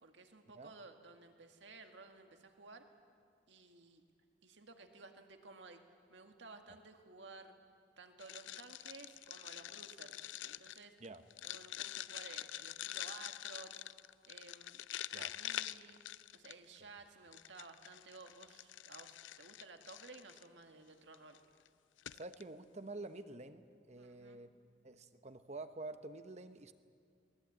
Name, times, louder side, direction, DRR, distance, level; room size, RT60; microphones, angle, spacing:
voice 1, 0.0-2.9 3.5-4.0 4.4-5.8 6.1-7.5 8.0-11.0 11.4-13.9 14.3-14.9 15.1-16.0 16.3-21.4 24.0-24.4, right 3 dB, 75° right, 5 dB, 2.0 m, -55 dB
sound 1, 8.2-16.8 17.3-20.5 21.1-21.4 21.7-21.8 22.0-22.4, left 13 dB, 85° left, 0.5 m, -46 dB
voice 2, 22.1-24.5 24.8-26.7, right 2 dB, 35° right, 10 dB, 0.9 m, -48 dB
23.0 x 19.5 x 8.7 m, 2.2 s
head